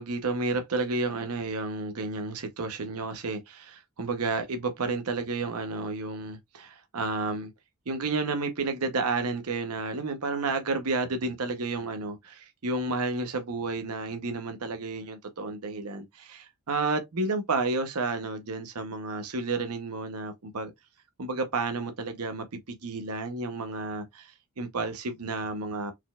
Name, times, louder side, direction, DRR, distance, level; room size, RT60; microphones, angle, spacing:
voice 1, 0.0-7.5 7.9-20.7 21.2-25.9, right 3 dB, 80° right, 0.8 m, -31 dB
4.5 x 4.0 x 2.3 m
head